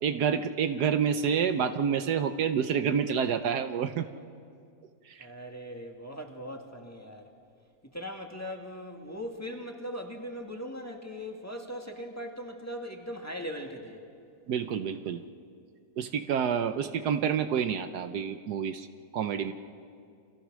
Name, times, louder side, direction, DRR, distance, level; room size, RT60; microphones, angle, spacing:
voice 1, 0.0-4.1 5.1-5.3 14.5-15.2 16.0-18.9 19.1-19.5, right 7 dB, 70° right, 9 dB, 1.3 m, -28 dB
voice 2, 5.2-7.3 7.9-14.0, equal, 10° left, 1 dB, 2.0 m, -39 dB
30.0 x 25.0 x 6.3 m, 2.3 s
omnidirectional pair, 1.8 m